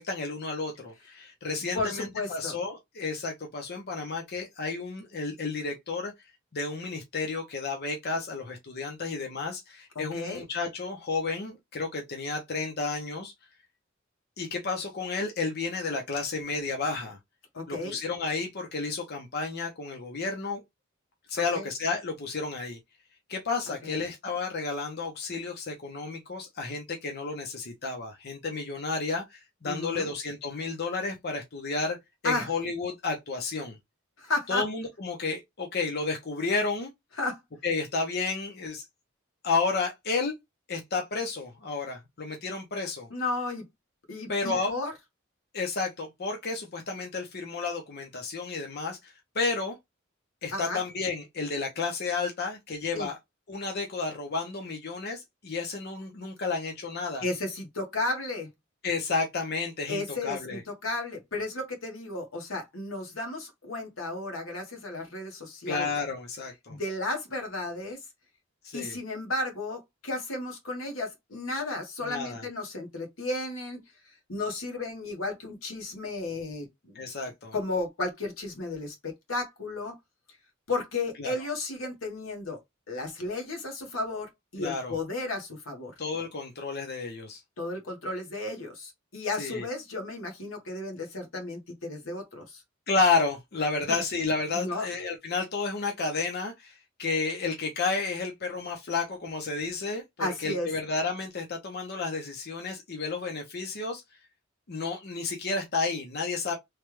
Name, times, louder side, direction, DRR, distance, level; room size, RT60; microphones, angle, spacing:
voice 1, 0.0-6.1 6.5-13.3 14.4-17.2 17.7-20.6 21.3-22.8 23.3-32.0 32.2-33.8 34.5-36.9 37.6-38.9 39.4-40.3 40.7-43.1 44.3-44.7 45.5-49.8 50.4-53.2 53.5-57.2 58.8-60.6 65.7-66.8 68.6-69.0 72.0-72.4 76.9-77.5 81.2-81.3 84.6-84.9 86.0-87.4 89.4-89.6 92.9-104.0 104.7-106.6, left 4 dB, 55° left, 0.7 m, -31 dB
voice 2, 1.7-2.6 9.9-10.4 17.5-18.0 21.5-21.7 23.8-24.0 29.6-30.1 32.2-32.5 34.2-34.7 37.2-37.4 43.1-43.6 44.1-44.9 50.5-50.8 52.9-53.1 57.2-58.5 59.9-66.0 66.7-68.0 68.7-73.8 74.3-77.1 77.5-79.9 80.7-82.6 82.9-85.9 87.6-92.6 94.5-94.9 100.2-100.7, left 2 dB, 90° left, 1.2 m, -33 dB
3.2 x 2.3 x 3.1 m
head